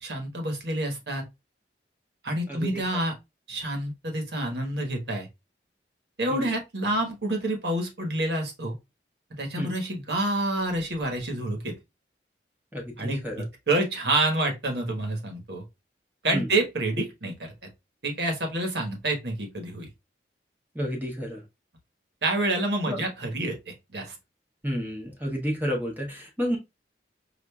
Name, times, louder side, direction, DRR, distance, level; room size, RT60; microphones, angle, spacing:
voice 1, 0.0-1.2 2.2-3.1 3.5-5.3 6.2-8.7 9.4-11.8 13.0-15.6 16.2-17.5 18.0-19.9 22.2-24.1, right 1 dB, 70° right, 1.2 m, -28 dB
voice 2, 2.5-2.8 6.3-6.5 9.6-9.7 12.7-13.5 16.3-16.5 20.7-21.4 22.8-23.0 24.6-26.6, equal, 10° right, 0.8 m, -31 dB
5.0 x 2.5 x 2.2 m
head